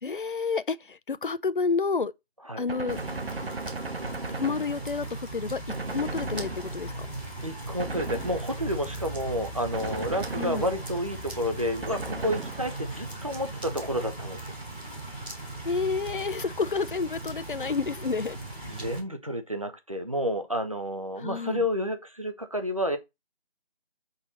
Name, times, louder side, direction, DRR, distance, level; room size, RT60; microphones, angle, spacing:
voice 1, 0.0-2.1 2.6-3.0 4.3-5.6 5.9-7.1 10.4-10.7 15.6-18.4 21.2-21.6, left 4 dB, 55° left, 0.5 m, -29 dB
Gunshot gunfire, 2.7-5.2 5.7-7.1 7.8-8.8 9.7-11.1 11.8-13.1, right 3 dB, 65° right, 0.9 m, -37 dB
sound 1, 2.9-19.0, right 2 dB, 10° right, 1.2 m, -38 dB
voice 2, 7.4-14.6 18.7-23.0, equal, 35° right, 0.6 m, -30 dB
6.0 x 4.0 x 3.9 m
figure-of-eight pair, 165°, 32 cm